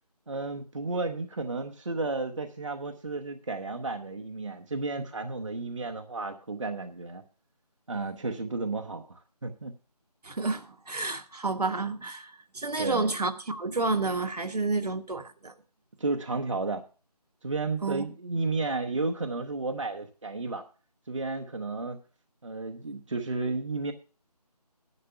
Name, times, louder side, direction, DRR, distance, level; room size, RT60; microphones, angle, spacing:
voice 1, 0.3-7.2 7.9-9.7 12.8-13.1 16.0-16.8 17.4-20.6 21.1-22.0 22.4-23.9, right 3 dB, 50° right, 1.0 m, -32 dB
voice 2, 10.2-15.5 17.8-18.1, right 3 dB, 70° right, 1.3 m, -30 dB
11.0 x 5.9 x 6.6 m
figure-of-eight pair, 175°, 21 cm